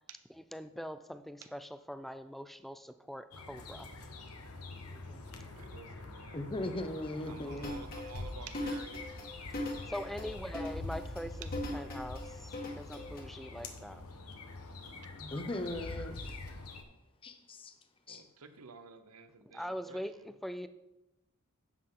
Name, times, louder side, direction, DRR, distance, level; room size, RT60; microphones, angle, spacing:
voice 1, 0.5-3.9 4.9-5.2 7.5-7.9 9.9-14.0 19.5-20.7, equal, ahead, 12 dB, 0.4 m, -43 dB
sound 1, 3.3-16.8, left 2 dB, 80° left, 1.2 m, -45 dB
voice 2, 5.5-6.8 7.3-10.2 10.9-11.1 11.4-11.5 18.1-20.0, right 6 dB, 85° right, 10 dB, 0.8 m, -52 dB
voice 3, 6.3-7.8 15.2-16.3 17.2-17.7 18.1-18.2, left 1 dB, 25° left, 7 dB, 0.8 m, -38 dB
sound 2, 7.6-13.2, left 1 dB, 40° left, 1.8 m, -40 dB
11.0 x 7.7 x 3.7 m, 0.94 s
head